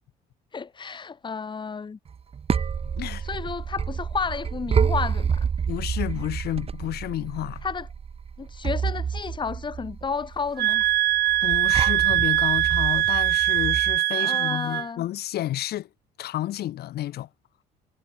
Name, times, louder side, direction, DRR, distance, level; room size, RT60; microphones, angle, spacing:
voice 1, 0.5-2.0 3.2-5.5 7.6-7.9 8.4-10.8 14.1-15.1, left 5 dB, 30° left, 2.9 m, -32 dB
sound 1, 2.1-14.0, right 6 dB, 35° right, 2.3 m, -29 dB
voice 2, 2.8-3.2 5.7-7.6 11.4-15.9 16.2-17.3, left 14 dB, 70° left, 4.2 m, -31 dB
sound 2, 10.6-14.9, right 16 dB, 75° right, 1.5 m, -22 dB
cardioid pair, 110°, 17 cm